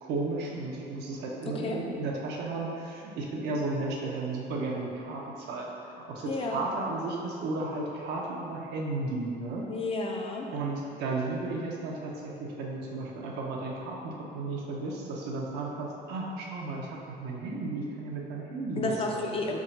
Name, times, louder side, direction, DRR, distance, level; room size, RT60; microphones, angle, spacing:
voice 1, 0.0-9.6 10.5-19.2, right 3 dB, 80° right, -1 dB, 0.6 m, -34 dB
voice 2, 6.2-6.6 9.7-10.5 18.8-19.6, left 2 dB, 35° left, 1 dB, 0.4 m, -31 dB
3.6 x 2.3 x 4.0 m, 2.8 s
cardioid pair, 110°, 17 cm